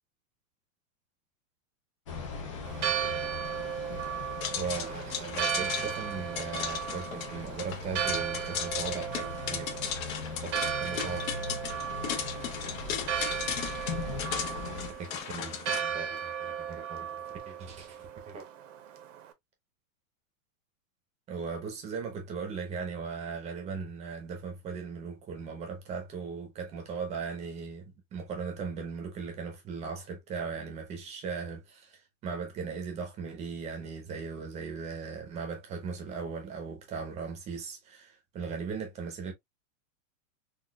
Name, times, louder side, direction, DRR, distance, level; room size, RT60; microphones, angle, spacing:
sound 1, 2.1-14.9, left 4 dB, 25° left, 0.3 m, -41 dB
Church bell, 2.7-19.3, right 8 dB, 60° right, 0.9 m, -36 dB
sound 2, 4.4-15.8, left 8 dB, 75° left, 0.9 m, -36 dB
voice 1, 4.6-9.7 10.4-11.6 13.8-14.2 15.0-18.0 18.3-18.4 21.3-39.3, right 5 dB, 15° right, 0.7 m, -38 dB
4.1 x 2.4 x 2.2 m
supercardioid pair, 160°, 42 cm